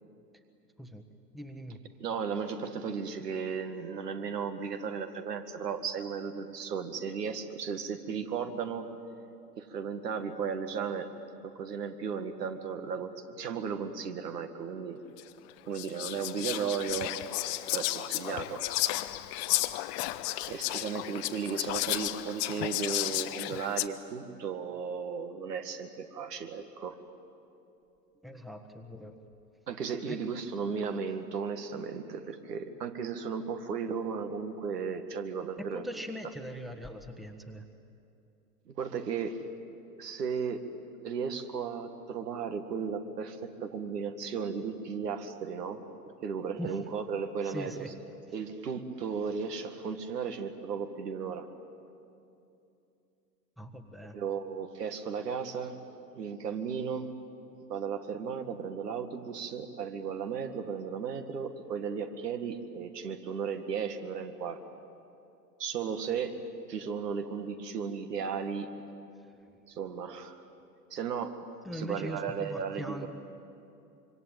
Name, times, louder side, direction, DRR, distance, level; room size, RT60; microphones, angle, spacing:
voice 1, 1.3-1.8 20.8-21.0 28.2-29.2 30.1-30.8 35.6-37.6 46.6-46.9 47.4-47.9 53.6-54.2 66.4-66.5 69.3-69.5 71.6-73.1, equal, ahead, 7 dB, 1.4 m, -41 dB
voice 2, 2.0-8.9 9.6-11.1 11.4-15.0 15.7-17.1 17.7-18.6 20.4-27.0 29.7-35.8 38.7-39.4 40.0-40.6 41.0-45.8 46.2-47.9 48.3-51.5 54.1-55.7 56.1-57.1 57.7-64.6 65.6-66.3 66.7-68.7 69.7-70.4 70.9-71.3 71.7-73.1, right 6 dB, 70° right, 7 dB, 2.1 m, -35 dB
Whispering, 15.2-15.3 15.7-23.9, left 17 dB, 40° left, 1.0 m, -33 dB
25.5 x 24.0 x 9.1 m, 2.7 s
figure-of-eight pair, 100°, 50 cm